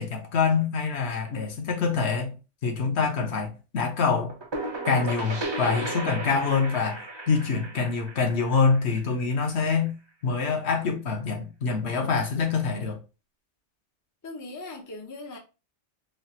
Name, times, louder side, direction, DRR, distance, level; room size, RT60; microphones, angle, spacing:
voice 1, 0.0-2.4 2.6-4.3 4.9-7.0 7.3-9.9 10.2-13.0, left 5 dB, 65° left, 1.0 m, -25 dB
sound 1, 4.1-9.6, right 2 dB, 30° right, 0.5 m, -35 dB
voice 2, 14.2-15.4, left 2 dB, 25° left, 0.4 m, -39 dB
3.2 x 2.3 x 2.7 m
omnidirectional pair, 1.2 m